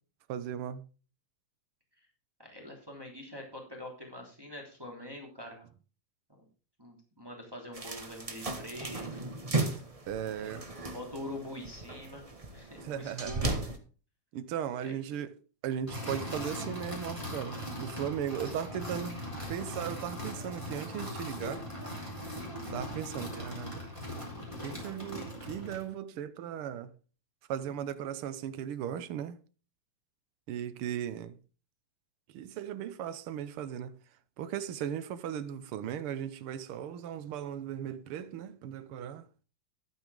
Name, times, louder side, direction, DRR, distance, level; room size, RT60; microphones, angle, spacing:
voice 1, 0.3-0.8 10.1-10.7 12.8-13.5 14.3-15.3 15.6-19.2 19.5-21.7 22.7-23.8 24.6-26.9 27.5-29.4 30.5-31.4 32.3-33.9 34.4-39.2, right 9 dB, 70° right, 1.3 m, -37 dB
voice 2, 2.4-5.7 6.4-6.5 6.8-9.2 9.5-9.8 10.2-13.6 14.8-14.9, left 1 dB, 10° right, 3.0 m, -45 dB
sound 1, 7.7-13.8, right 2 dB, 50° right, 0.4 m, -36 dB
sound 2, 15.9-25.9, equal, 10° left, 3.9 m, -40 dB
12.5 x 9.1 x 3.6 m
omnidirectional pair, 3.4 m